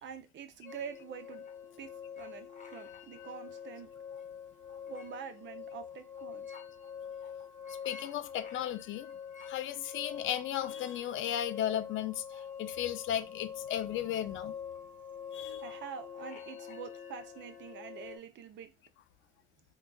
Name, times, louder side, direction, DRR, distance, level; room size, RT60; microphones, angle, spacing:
voice 1, 0.0-1.5 1.8-3.9 4.9-6.5 15.6-18.7, right 7 dB, 65° right, 0.6 m, -46 dB
sound 1, 0.6-18.2, left 7 dB, 40° left, 0.8 m, -45 dB
voice 2, 7.7-9.1 9.5-14.5 15.3-15.6, left 11 dB, 75° left, 0.4 m, -35 dB
3.8 x 2.4 x 2.3 m
cardioid pair, 90°, 20 cm